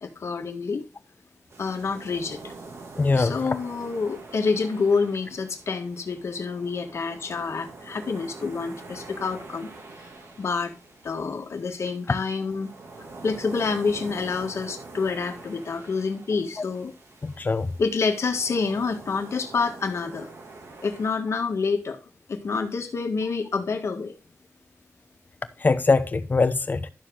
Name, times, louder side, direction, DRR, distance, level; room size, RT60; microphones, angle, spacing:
voice 1, 0.0-0.8 1.6-2.4 3.2-9.7 10.4-10.7 11.0-12.7 13.2-16.9 17.8-20.3 20.8-22.0 22.3-24.1, left 4 dB, 75° left, 1.6 m, -27 dB
sound 1, 1.5-21.1, right 3 dB, 70° right, 2.1 m, -45 dB
voice 2, 3.0-3.5 17.2-17.7 25.6-26.9, left 3 dB, 40° left, 0.9 m, -22 dB
12.0 x 6.8 x 3.7 m
wide cardioid pair, 135°, 5 cm